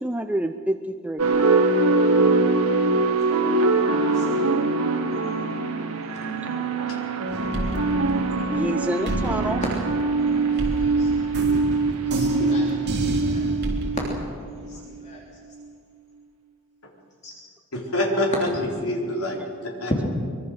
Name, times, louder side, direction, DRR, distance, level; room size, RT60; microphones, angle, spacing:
voice 1, 0.0-1.2 6.8-7.0 8.3-9.6, right 1 dB, 5° right, 6 dB, 0.6 m, -28 dB
sound 1, 1.2-14.5, right 3 dB, 75° right, 1.9 m, -23 dB
voice 2, 3.3-4.5 9.6-9.7 10.5-11.1 12.0-12.7 13.1-13.5 14.5-15.2 17.2-17.3, left 1 dB, 30° left, -2 dB, 3.3 m, -41 dB
sound 2, 7.3-8.7 9.1-14.1, right 1 dB, 50° right, 3.7 m, -30 dB
voice 3, 17.7-20.0, left 1 dB, 70° left, 0 dB, 4.5 m, -26 dB
24.0 x 23.0 x 6.5 m, 2.1 s
head